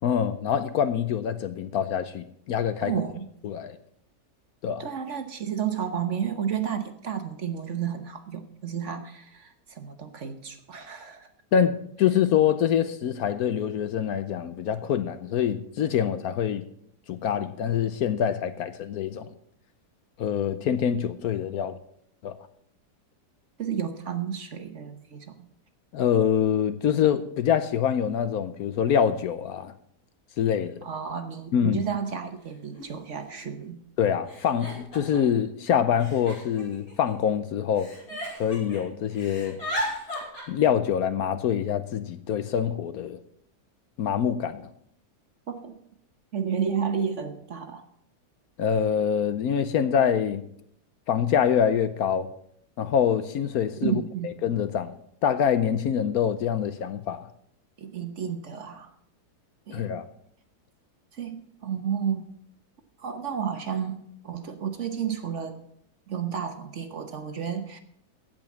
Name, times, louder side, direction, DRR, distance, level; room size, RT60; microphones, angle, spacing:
voice 1, 0.0-2.9 3.4-3.8 4.6-4.8 11.5-16.6 17.1-19.3 20.2-21.8 22.2-22.3 25.9-29.7 30.4-30.8 31.5-31.8 34.0-37.9 38.4-39.6 40.5-43.2 44.0-44.7 48.6-50.4 51.1-52.3 52.8-53.9 54.4-54.9 55.2-57.3 59.7-60.1, left 8 dB, 70° left, 1.1 m, -25 dB
voice 2, 2.8-3.2 4.8-11.3 23.6-25.5 30.8-33.8 45.5-45.8 46.3-47.9 53.8-54.3 57.8-58.9 59.7-59.9 61.1-62.2 63.0-65.6 66.1-67.8, right 7 dB, 50° right, 1.2 m, -31 dB
Giggle, 31.7-31.8 32.7-32.8 33.1-33.6 34.3-35.4 36.0-37.3 37.8-38.8 39.1-40.4, equal, 40° left, 6.3 m, -35 dB
16.0 x 5.3 x 7.1 m
omnidirectional pair, 1.8 m